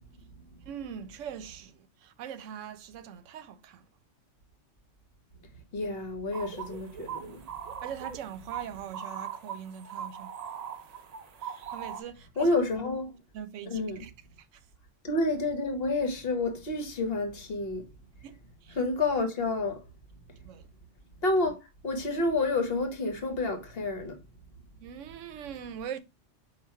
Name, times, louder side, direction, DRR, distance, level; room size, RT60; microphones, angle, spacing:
voice 1, 0.7-3.8 7.8-10.3 11.4-12.5 13.3-14.1 14.4-14.5 18.2-18.8 20.4-20.7 24.8-26.0, right 8 dB, 85° right, 0.9 m, -42 dB
voice 2, 5.7-7.4 12.4-13.1 13.7-14.0 15.0-17.8 18.8-19.8 21.2-21.6 21.8-24.2, left 2 dB, 55° left, 1.1 m, -29 dB
Bird Sounds of Knysna, 6.3-12.0, right 8 dB, 55° right, 0.4 m, -40 dB
5.1 x 2.4 x 4.3 m
omnidirectional pair, 1.2 m